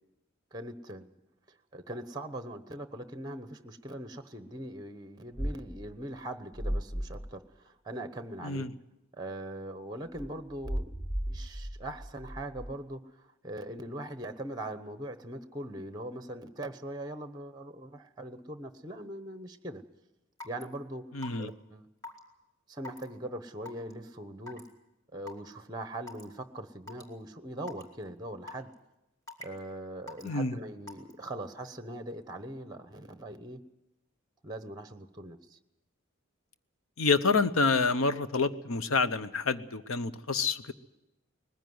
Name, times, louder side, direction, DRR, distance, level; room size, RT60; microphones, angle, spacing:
voice 1, 0.5-1.1 1.5-8.7 9.1-11.0 11.3-19.8 20.4-21.0 21.4-21.9 22.7-24.6 25.1-28.7 29.4-33.6 34.4-35.6, right 1 dB, 20° right, 10 dB, 1.0 m, -41 dB
sound 1, 5.4-5.9 6.5-7.3 10.1-12.7, equal, 50° left, 3.2 m, -35 dB
Raindrop / Water tap faucet / Drip, 20.4-20.6 21.2-21.5 22.0-22.2 22.8-23.0 23.7-23.9 24.5-24.7 25.3-25.4 26.1-26.2 26.9-27.0 27.7-27.8 28.5-28.7 29.3-29.6 30.1-30.3 30.9-31.1, left 2 dB, 15° left, 2.5 m, -43 dB
voice 2, 21.1-21.5 30.2-30.5 37.0-40.7, left 4 dB, 85° left, 12 dB, 0.9 m, -28 dB
20.0 x 15.5 x 9.5 m, 0.95 s
head